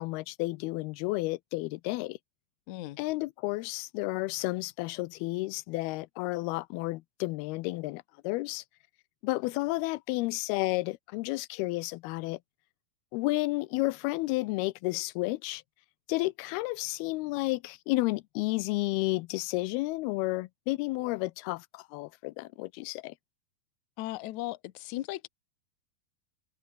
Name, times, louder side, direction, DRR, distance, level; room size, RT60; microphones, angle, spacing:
voice 1, 0.0-2.2 3.0-8.6 9.2-12.4 13.1-15.6 16.1-23.1, left 21 dB, 90° left, 2.6 m, -31 dB
voice 2, 2.7-3.0 24.0-25.3, left 16 dB, 70° left, 1.9 m, -37 dB
omnidirectional pair, 4.4 m